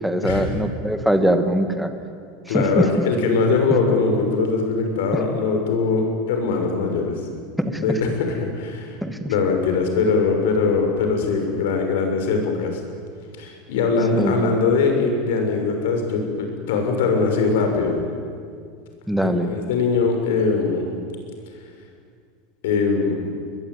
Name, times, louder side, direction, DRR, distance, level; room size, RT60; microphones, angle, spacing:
voice 1, 0.0-1.9 2.5-2.8 5.1-5.2 7.6-7.8 9.0-9.3 14.1-14.5 19.1-19.5, equal, ahead, 7 dB, 1.4 m, -22 dB
voice 2, 2.5-7.1 7.8-9.0 9.2-12.8 13.4-18.0 19.2-20.9 22.6-23.2, left 4 dB, 75° left, 4 dB, 6.2 m, -21 dB
22.5 x 21.5 x 9.5 m, 2.2 s
supercardioid pair, 175°, 0 cm